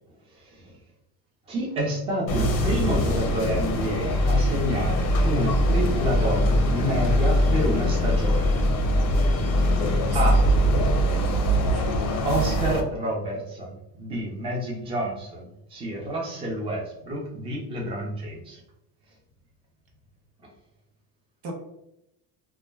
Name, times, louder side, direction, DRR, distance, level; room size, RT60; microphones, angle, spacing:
voice 1, 0.3-0.8 1.5-8.6 10.1-10.4 12.2-18.6, equal, 15° right, -3 dB, 0.5 m, -29 dB
sound 1, 2.3-12.8, equal, 40° left, 0.5 m, -22 dB
voice 2, 9.6-11.9 21.4-21.5, right 1 dB, 65° right, 1 dB, 0.8 m, -41 dB
2.3 x 2.1 x 3.1 m, 0.84 s
cardioid pair, 140°, 44 cm